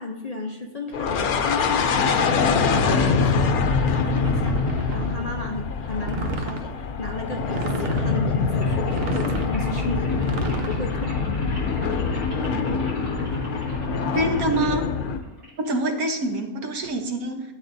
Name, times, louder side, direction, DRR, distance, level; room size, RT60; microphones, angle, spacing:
voice 1, 0.0-2.0 2.4-3.5 3.8-11.2, left 3 dB, 40° left, 2 dB, 0.6 m, -33 dB
sound 1, 0.9-15.2, left 4 dB, 85° left, 1.3 m, -24 dB
sound 2, 4.1-5.3 6.0-6.7 7.4-8.2 8.8-9.6 10.1-10.8, right 2 dB, 50° right, 1.0 m, -30 dB
sound 3, 7.4-16.4, equal, 70° right, 4.2 m, -45 dB
voice 2, 14.1-14.9 15.6-17.4, right 1 dB, 90° right, 4 dB, 1.6 m, -25 dB
13.0 x 8.0 x 2.7 m, 1.2 s
omnidirectional pair, 1.5 m